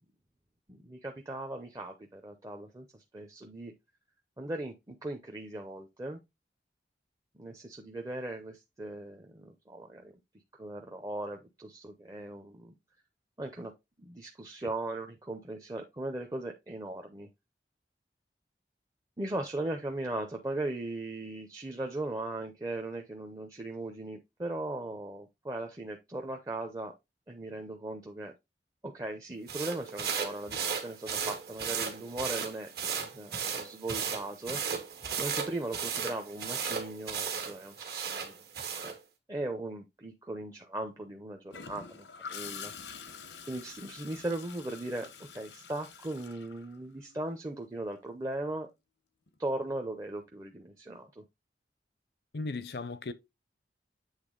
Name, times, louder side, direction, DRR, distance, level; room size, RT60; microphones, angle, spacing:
voice 1, 0.7-3.7 4.4-6.2 7.3-10.1 10.5-12.7 13.4-13.7 14.0-17.3 19.2-26.9 27.3-28.3 28.8-32.7 33.0-34.6 35.2-38.3 38.8-39.0 39.3-42.7 43.5-48.7 49.4-51.2, right 2 dB, 20° right, 0.6 m, -38 dB
sound 1, 29.5-39.0, right 6 dB, 65° right, 1.6 m, -35 dB
Gurgling / Toilet flush, 41.5-47.2 49.3-49.5, left 6 dB, 90° left, 0.9 m, -46 dB
voice 2, 52.3-53.1, left 3 dB, 65° left, 0.6 m, -36 dB
8.0 x 3.4 x 3.7 m
head